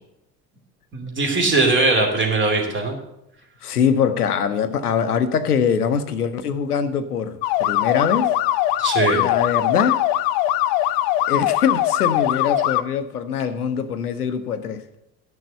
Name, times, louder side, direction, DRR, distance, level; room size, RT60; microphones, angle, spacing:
voice 1, 0.9-3.0 8.8-9.2, right 3 dB, 25° right, 2.7 m, -20 dB
voice 2, 3.6-8.3 9.1-10.0 11.3-14.9, left 7 dB, 80° left, 0.8 m, -23 dB
sound 1, 7.4-12.8, left 14 dB, 50° left, 0.6 m, -21 dB
11.5 x 6.3 x 6.7 m
figure-of-eight pair, 65°, 45 cm